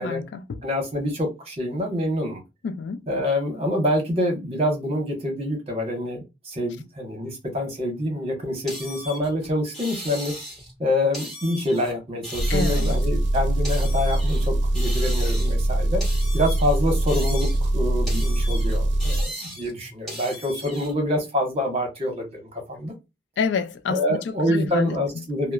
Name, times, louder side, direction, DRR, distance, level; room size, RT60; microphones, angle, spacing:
voice 1, 0.0-0.6 2.6-3.1 12.5-12.9 23.4-24.0 24.4-25.0, left 5 dB, 75° left, 0.3 m, -28 dB
voice 2, 0.6-2.4 3.1-10.3 10.8-16.0 16.3-22.9 23.9-25.5, left 1 dB, 35° right, 1.1 m, -26 dB
sound 1, 8.7-10.8 11.1-11.9 12.2-14.5 14.7-15.7 16.0-17.7 18.1-20.9, equal, ahead, 1.5 m, -37 dB
Engine, 12.4-19.3, right 1 dB, 75° right, 0.5 m, -22 dB
3.0 x 2.0 x 2.3 m
head